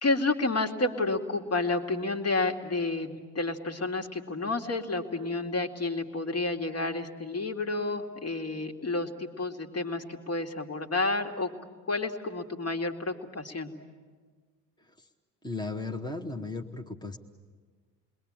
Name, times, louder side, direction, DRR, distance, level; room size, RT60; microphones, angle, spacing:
voice 1, 0.0-11.5 11.9-13.7, left 3 dB, 30° left, 4 dB, 2.4 m, -30 dB
voice 2, 15.4-17.2, left 3 dB, 10° left, 2 dB, 1.6 m, -35 dB
29.5 x 21.5 x 8.9 m, 1.5 s
hypercardioid pair, 65°, 46 cm